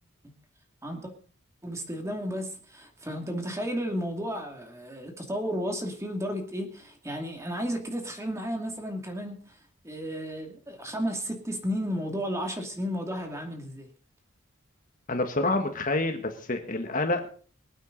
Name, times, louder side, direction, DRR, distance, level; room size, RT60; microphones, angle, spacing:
voice 1, 1.6-9.5 9.8-13.9, equal, 15° right, 3 dB, 2.6 m, -33 dB
voice 2, 15.1-17.3, left 2 dB, 40° left, 6 dB, 1.5 m, -28 dB
25.0 x 9.0 x 4.0 m, 0.42 s
head